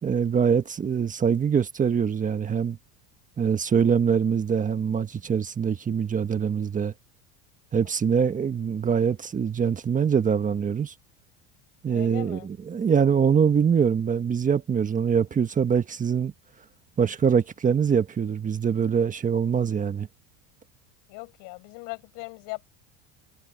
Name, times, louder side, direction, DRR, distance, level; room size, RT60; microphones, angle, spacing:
voice 1, 0.0-2.8 3.4-6.9 7.7-10.9 11.8-16.3 17.0-20.1, right 7 dB, 25° right, 1.5 m, -23 dB
voice 2, 11.9-12.5 21.1-22.7, left 30 dB, 70° left, 7.3 m, -39 dB
supercardioid pair, 120°, 33 cm